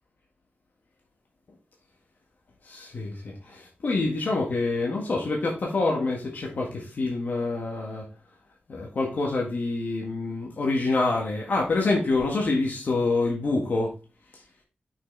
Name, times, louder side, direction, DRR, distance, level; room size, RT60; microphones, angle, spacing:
voice 1, 2.7-8.1 8.7-13.9, left 3 dB, 55° left, -1 dB, 1.7 m, -26 dB
6.3 x 6.3 x 3.4 m, 0.33 s
wide cardioid pair, 150°, 4 cm